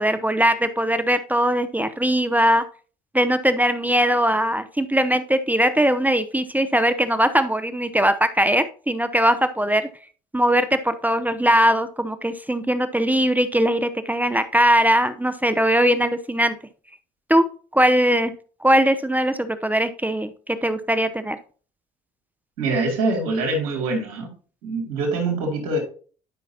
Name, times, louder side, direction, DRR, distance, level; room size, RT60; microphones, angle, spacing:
voice 1, 0.0-2.6 3.1-9.9 10.3-16.6 17.3-17.4 17.7-18.3 18.6-21.4, equal, 10° right, 11 dB, 0.8 m, -20 dB
voice 2, 22.6-24.3 24.6-25.8, right 2 dB, 85° right, 0 dB, 2.6 m, -24 dB
11.5 x 5.5 x 2.8 m, 0.41 s
hypercardioid pair, 60°, 20 cm